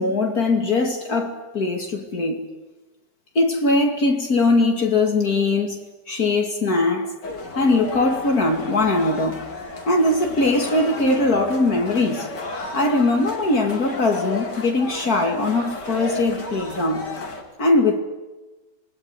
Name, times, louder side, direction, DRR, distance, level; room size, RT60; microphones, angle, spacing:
voice 1, 0.0-2.5 3.3-7.1 7.6-9.4 9.9-12.3 12.7-17.1 17.6-18.0, left 2 dB, 55° left, 2.9 m, -21 dB
sound 1, 7.2-17.4, left 3 dB, 75° left, 3.9 m, -33 dB
27.5 x 21.0 x 9.7 m
omnidirectional pair, 1.9 m